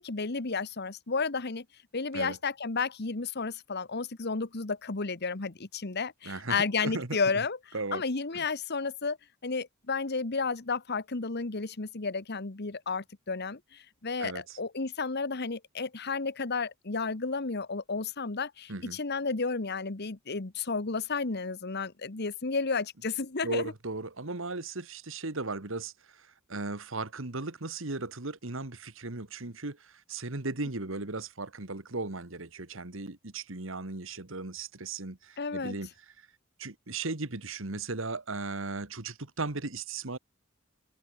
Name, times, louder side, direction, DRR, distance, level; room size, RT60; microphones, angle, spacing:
voice 1, 0.0-1.6 1.9-7.6 7.9-9.2 9.4-23.7 35.4-35.7, left 4 dB, 55° left, 1.3 m, -32 dB
voice 2, 6.3-7.2 7.7-8.0 8.3-8.4 14.2-14.6 18.7-19.0 23.4-25.9 26.5-35.9 36.6-40.2, right 3 dB, 70° right, 2.0 m, -36 dB
head